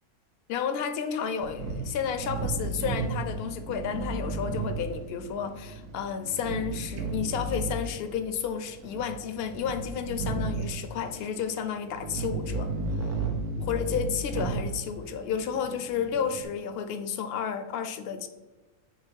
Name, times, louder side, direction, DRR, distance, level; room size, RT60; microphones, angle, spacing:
voice 1, 0.5-12.7 13.6-18.3, left 7 dB, 65° left, 8 dB, 0.6 m, -31 dB
sound 1, 1.4-16.4, right 3 dB, 90° right, 1.3 m, -34 dB
6.0 x 3.6 x 4.5 m, 1.2 s
omnidirectional pair, 1.5 m